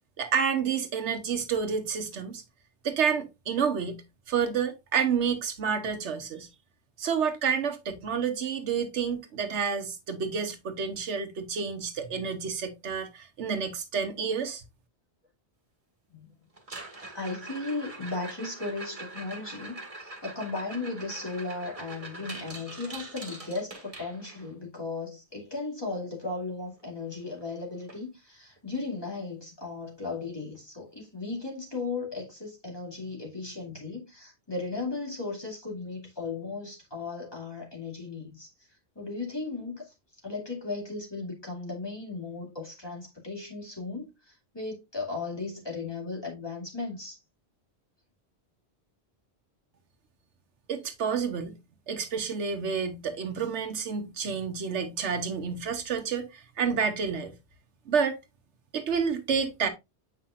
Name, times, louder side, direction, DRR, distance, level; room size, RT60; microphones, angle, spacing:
voice 1, 0.2-2.4 2.8-4.0 4.3-6.5 7.0-14.6 50.7-51.6 51.9-57.3 57.9-58.2 58.7-59.7, right 6 dB, 85° right, 1.2 m, -29 dB
sound 1, 16.6-24.5 26.8-26.9 27.1-27.5 27.9-28.0 28.6-28.7 30.5-30.6, right 2 dB, 30° right, 1.7 m, -43 dB
voice 2, 17.1-38.5 39.0-39.9 40.2-47.2, left 3 dB, 20° left, 2.4 m, -36 dB
7.8 x 5.7 x 2.4 m
omnidirectional pair, 1.1 m